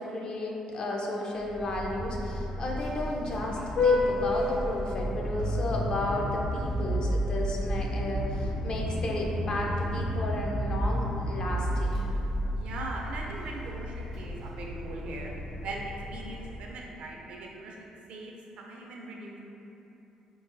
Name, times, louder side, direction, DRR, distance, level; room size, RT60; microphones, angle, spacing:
voice 1, 0.0-12.0, left 1 dB, 45° left, -1 dB, 0.5 m, -33 dB
Vehicle horn car horn honking, 1.4-16.8, left 1 dB, 65° left, 1.0 m, -31 dB
voice 2, 12.6-15.3 15.6-19.4, right 2 dB, 70° right, -1 dB, 0.4 m, -40 dB
3.7 x 2.1 x 2.6 m, 2.9 s
cardioid pair, 85°, 2 cm